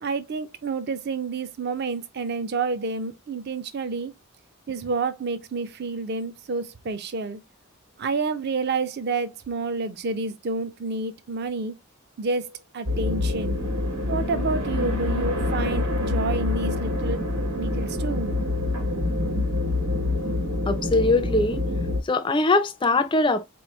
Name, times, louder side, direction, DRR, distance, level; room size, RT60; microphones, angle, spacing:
voice 1, 0.0-4.1 4.7-7.4 8.0-11.7 12.2-13.6 14.1-17.3 17.6-18.3, right 4 dB, 50° right, 0.5 m, -29 dB
sound 1, 12.9-22.0, left 2 dB, 85° right, 1.6 m, -26 dB
voice 2, 20.7-21.7 22.0-23.5, left 2 dB, 25° left, 0.4 m, -22 dB
4.1 x 3.1 x 3.0 m
head